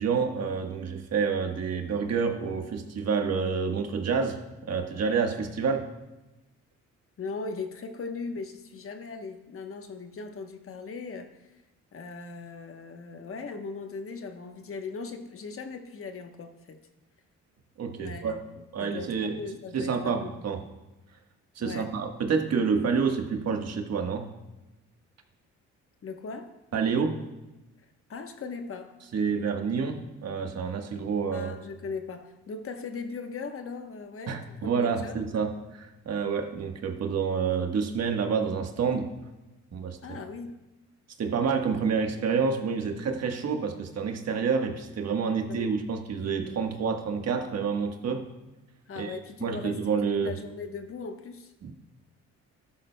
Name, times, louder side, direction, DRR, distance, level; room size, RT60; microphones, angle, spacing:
voice 1, 0.0-4.4 4.7-5.8 17.8-18.4 18.7-19.4 19.7-20.6 21.5-24.3 26.7-27.2 29.1-31.5 34.3-39.1 39.7-40.2 41.2-48.2 49.0-50.3 51.6-51.7, right 5 dB, 55° right, 4 dB, 1.3 m, -28 dB
voice 2, 7.2-11.5 11.9-16.8 18.0-20.3 21.6-21.9 22.5-22.7 26.0-26.5 28.1-28.9 31.3-35.1 40.0-40.6 45.4-45.7 48.9-49.8 50.2-51.5, left 4 dB, 45° left, 6 dB, 1.1 m, -39 dB
13.0 x 11.5 x 2.2 m, 1.0 s
cardioid pair, 90°, 30 cm